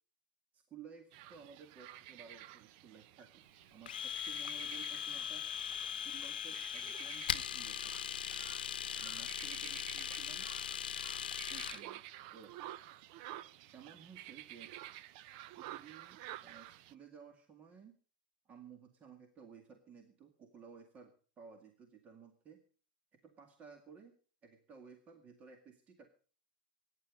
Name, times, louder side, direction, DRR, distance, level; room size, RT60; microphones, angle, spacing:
voice 1, 0.5-5.5 5.8-8.0 9.0-10.5 11.5-12.0 12.3-12.5 13.7-14.7 15.5-17.9 18.5-22.6 23.1-24.1 24.4-26.1, right 7 dB, 30° right, 6 dB, 2.0 m, -56 dB
sound 1, 1.1-16.9, right 14 dB, 55° right, 0.7 m, -52 dB
Domestic sounds home sounds, 3.9-11.8, left 9 dB, 90° left, 0.8 m, -40 dB
23.0 x 10.0 x 5.3 m, 0.41 s
hypercardioid pair, 115°, 5 cm